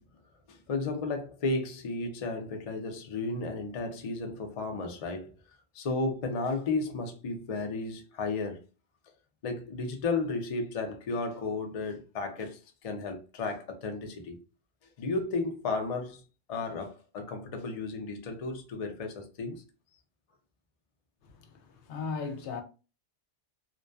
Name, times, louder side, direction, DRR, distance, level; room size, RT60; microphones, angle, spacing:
voice 1, 0.5-5.4 5.7-8.6 9.4-14.4 15.0-16.2 16.5-19.6, left 3 dB, 50° left, 0.4 m, -33 dB
voice 2, 21.2-22.6, left 5 dB, 75° left, 0.8 m, -37 dB
2.5 x 2.2 x 2.2 m
omnidirectional pair, 1.2 m